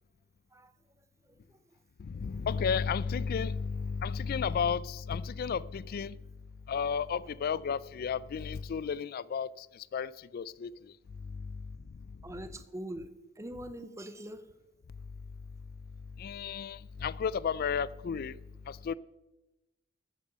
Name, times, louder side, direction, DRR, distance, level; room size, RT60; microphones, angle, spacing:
voice 1, 2.0-6.2 6.7-9.7 9.9-10.7 11.3-11.5 16.2-18.4 18.7-18.9, left 6 dB, 50° left, 0.3 m, -33 dB
voice 2, 12.2-13.1 13.4-14.4, right 1 dB, 15° right, 0.7 m, -43 dB
13.5 x 8.3 x 5.6 m
head